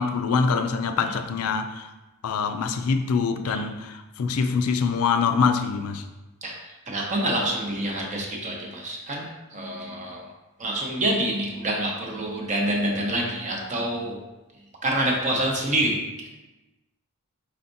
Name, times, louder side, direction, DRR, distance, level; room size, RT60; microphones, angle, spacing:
voice 1, 0.0-1.9 2.2-6.0, left 5 dB, 75° left, 7 dB, 0.4 m, -24 dB
voice 2, 6.4-10.2 10.6-14.2 14.8-16.3, right 1 dB, 35° right, -1 dB, 0.8 m, -27 dB
4.4 x 4.1 x 2.6 m, 1.1 s
head